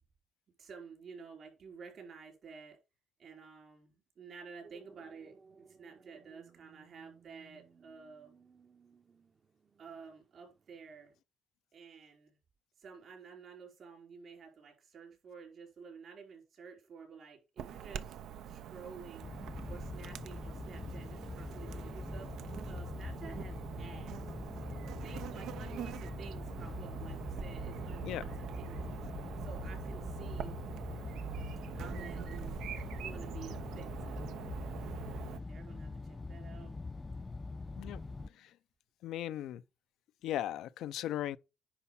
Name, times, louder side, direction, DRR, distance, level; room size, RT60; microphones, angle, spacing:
voice 1, 0.6-2.8 3.2-8.3 9.8-11.1 11.7-12.4 12.8-18.2 18.4-19.3 19.7-24.2 25.0-28.3 28.6-28.9 29.4-30.5 31.7-32.6 33.0-34.2 35.3-36.8 37.8-38.5, right 5 dB, 60° right, 5.0 m, -52 dB
sound 1, 4.6-11.2, right 5 dB, 40° right, 0.9 m, -62 dB
Chirp tweet / Buzz, 17.6-35.4, right 9 dB, 80° right, 0.7 m, -44 dB
sound 2, 19.2-38.3, left 3 dB, 25° left, 0.4 m, -43 dB
voice 2, 28.0-28.4 37.8-38.5 39.0-39.6 40.2-41.4, left 12 dB, 85° left, 0.4 m, -38 dB
10.0 x 4.1 x 5.7 m
cardioid pair, 90°, 0 cm